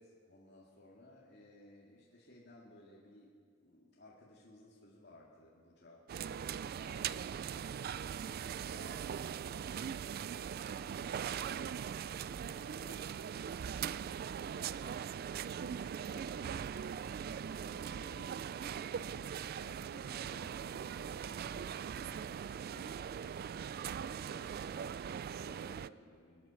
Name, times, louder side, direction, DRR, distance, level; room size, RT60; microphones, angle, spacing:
voice 1, 0.0-17.2 17.5-23.4 23.9-26.5, left 1 dB, 60° left, -5 dB, 2.3 m, -59 dB
sound 1, 6.1-25.9, right 8 dB, 50° right, 0.3 m, -40 dB
23.5 x 8.9 x 7.0 m, 2.1 s
head